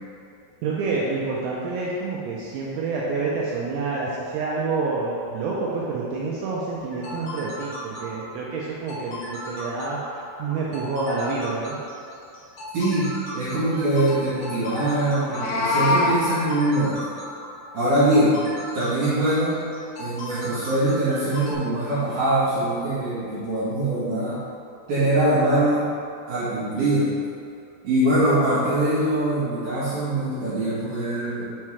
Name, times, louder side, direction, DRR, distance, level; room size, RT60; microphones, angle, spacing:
voice 1, 0.6-11.8, right 3 dB, 85° right, -5 dB, 2.6 m, -28 dB
sound 1, 6.8-21.5, left 1 dB, 65° left, 1.8 m, -37 dB
voice 2, 12.7-17.0 17.7-18.4 18.7-19.6 20.0-24.4 24.9-25.9 26.3-27.1 27.8-31.4, right 1 dB, 60° right, -13 dB, 2.1 m, -22 dB
Meow, 15.1-16.2, left 2 dB, 85° left, 3.3 m, -22 dB
7.2 x 4.5 x 3.2 m, 2.4 s
omnidirectional pair, 5.9 m